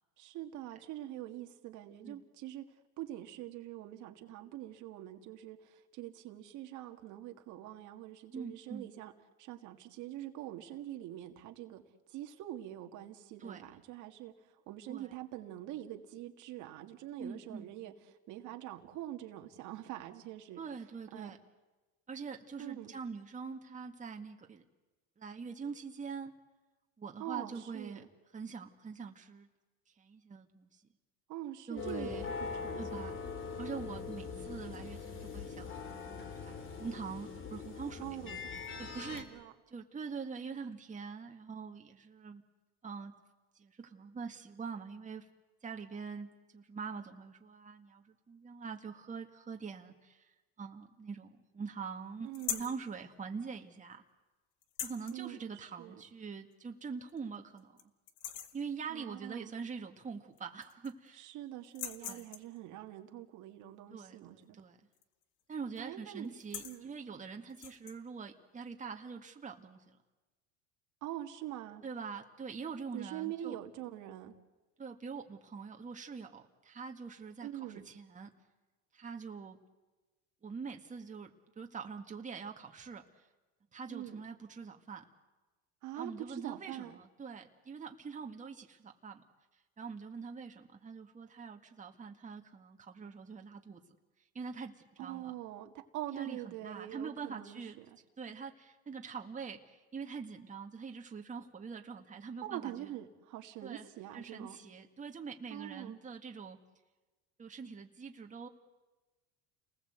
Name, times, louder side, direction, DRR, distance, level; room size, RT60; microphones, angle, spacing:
voice 1, 0.2-2.7 3.0-9.1 9.4-11.8 12.1-20.6 21.1-21.4 22.6-22.9 27.2-28.1 31.3-33.2 38.0-38.5 39.1-39.5 52.2-52.7 55.1-55.9 58.9-59.5 61.2-64.6 65.8-66.3 66.6-66.9 71.0-71.8 72.9-74.3 77.4-77.9 83.9-84.2 85.8-87.0 95.0-98.0 102.4-104.6 105.5-106.0, right 13 dB, 60° right, 5 dB, 1.9 m, -44 dB
voice 2, 8.3-8.9 13.4-13.6 14.9-15.1 17.2-17.8 20.6-21.4 22.1-24.6 25.2-26.3 27.0-28.1 28.3-29.5 30.0-30.8 31.7-32.3 32.8-33.1 33.6-38.0 38.8-42.5 42.8-43.2 43.6-45.3 45.6-50.3 50.6-54.0 54.8-57.7 58.5-61.3 62.0-62.3 63.9-64.8 65.5-70.0 71.8-73.6 74.8-78.3 78.9-79.6 80.4-83.3 83.7-85.0 85.9-89.2 89.8-93.8 94.3-95.3 96.1-97.8 98.2-102.9 103.6-103.9 104.1-106.6 107.4-108.5, right 5 dB, 20° right, 3 dB, 2.0 m, -44 dB
sound 1, 31.8-39.2, left 5 dB, 35° left, 3.3 m, -42 dB
sound 2, 52.3-52.8 54.6-55.2 56.5-56.6 57.1-57.2 57.6-57.8 58.1-58.6 60.0-60.1 60.4-61.1 61.6-62.6 64.9-65.2 65.5-65.8 66.2-66.8 67.5-68.0, left 10 dB, 65° left, 1.8 m, -42 dB
29.5 x 19.5 x 8.1 m, 1.2 s
supercardioid pair, 110°, 33 cm